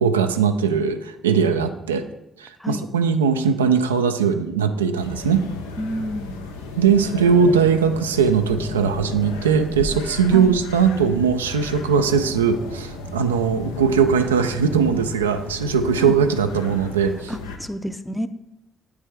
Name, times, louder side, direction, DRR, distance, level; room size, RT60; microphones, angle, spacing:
voice 1, 0.0-2.0 2.4-5.5 6.8-17.3, right 6 dB, 90° right, 8 dB, 0.3 m, -20 dB
sound 1, 5.0-17.6, left 3 dB, 85° left, 0.6 m, -34 dB
voice 2, 5.8-6.6 10.3-10.5 16.0-16.2 17.3-18.3, equal, 5° left, 11 dB, 0.5 m, -29 dB
8.8 x 4.7 x 3.3 m, 0.90 s
hypercardioid pair, 45°, 0 cm